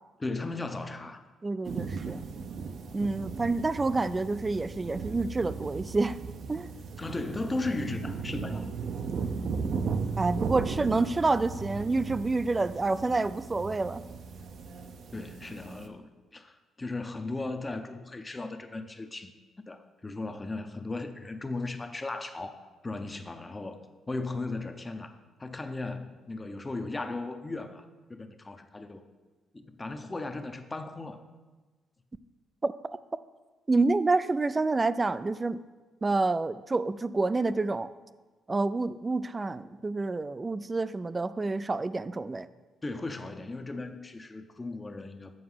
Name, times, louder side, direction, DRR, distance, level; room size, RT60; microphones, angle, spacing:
voice 1, 0.2-1.2 7.0-8.7 15.1-19.3 19.7-22.5 22.8-23.8 24.1-29.0 29.5-31.2 42.8-45.3, left 2 dB, 20° left, 8 dB, 0.7 m, -36 dB
voice 2, 1.4-2.2 2.9-6.2 6.5-6.7 9.1-9.4 10.2-14.1 32.6-32.7 33.7-35.6 36.0-37.9 38.5-42.5, right 3 dB, 25° right, 14 dB, 0.3 m, -28 dB
sound 1, 1.6-15.9, right 5 dB, 65° right, 0.6 m, -36 dB
7.9 x 4.6 x 5.6 m, 1.3 s
cardioid pair, 90°, 0 cm